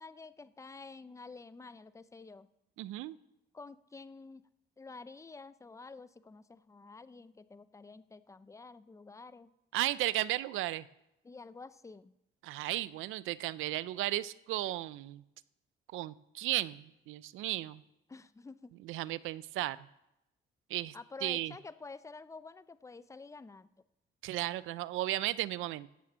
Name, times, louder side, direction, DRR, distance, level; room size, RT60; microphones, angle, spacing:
voice 1, 0.0-2.5 3.5-4.5 4.8-9.5 11.2-12.1 18.1-18.7 20.9-23.7, left 3 dB, 15° left, 15 dB, 0.6 m, -49 dB
voice 2, 2.8-3.2 9.7-10.9 12.4-15.2 15.9-17.8 18.8-19.8 20.7-21.0 21.2-21.5 24.2-25.9, right 15 dB, 90° right, 18 dB, 0.5 m, -34 dB
13.0 x 8.6 x 7.4 m, 0.88 s
cardioid pair, 90°, 20 cm